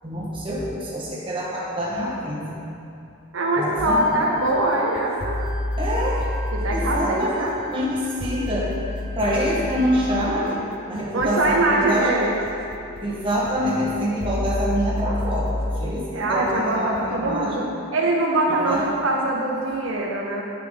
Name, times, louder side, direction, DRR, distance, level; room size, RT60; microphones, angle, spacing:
voice 1, 0.0-2.6 3.5-4.2 5.8-6.3 6.7-8.7 9.2-10.6 10.9-12.1 13.0-17.7 18.5-18.8, equal, 25° right, -6 dB, 1.5 m, -26 dB
voice 2, 3.3-5.4 6.5-7.5 11.1-12.4 16.1-17.6 17.9-20.4, right 1 dB, 70° right, -2 dB, 0.8 m, -23 dB
Wind instrument woodwind instrument, 3.8-10.0, right 3 dB, 60° left, 1.3 m, -43 dB
sound 1, 3.8-17.0, left 1 dB, 25° left, 0.4 m, -31 dB
9.3 x 6.0 x 3.9 m, 2.6 s
head